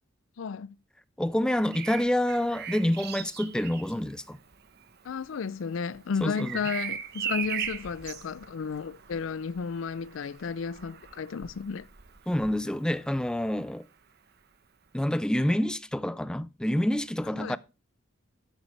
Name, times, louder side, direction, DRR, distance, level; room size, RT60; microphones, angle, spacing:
voice 1, 0.4-0.8 5.0-11.9 17.4-17.6, left 5 dB, 80° left, 0.4 m, -33 dB
voice 2, 1.2-4.4 6.2-6.6 12.3-13.9 14.9-17.6, left 1 dB, 5° left, 0.4 m, -27 dB
Bird vocalization bird call bird song, 1.5-13.3 15.0-15.2, right 8 dB, 55° right, 1.1 m, -40 dB
10.5 x 8.2 x 3.3 m
head